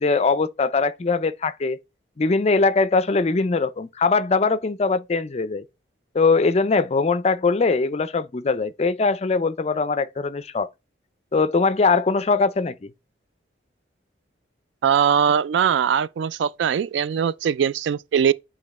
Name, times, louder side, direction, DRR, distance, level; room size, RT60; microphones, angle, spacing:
voice 1, 0.0-1.8 2.2-5.6 6.1-10.7 11.3-12.9, left 4 dB, 35° left, 0.4 m, -21 dB
voice 2, 14.8-18.3, right 8 dB, 75° right, 0.3 m, -21 dB
8.3 x 3.0 x 4.1 m
head